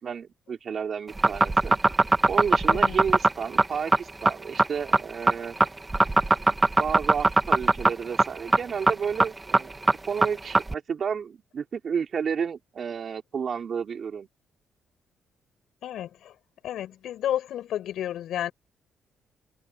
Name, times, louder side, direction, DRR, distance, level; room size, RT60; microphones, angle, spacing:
voice 1, 0.0-1.8 2.3-5.6 6.5-9.7 10.1-14.3, right 6 dB, 50° right, 3.4 m, -31 dB
sound 1, 1.1-10.7, right 2 dB, 20° right, 2.0 m, -20 dB
voice 2, 15.8-16.3 16.6-18.5, left 11 dB, 75° left, 6.3 m, -31 dB
cardioid pair, 90°, 0 cm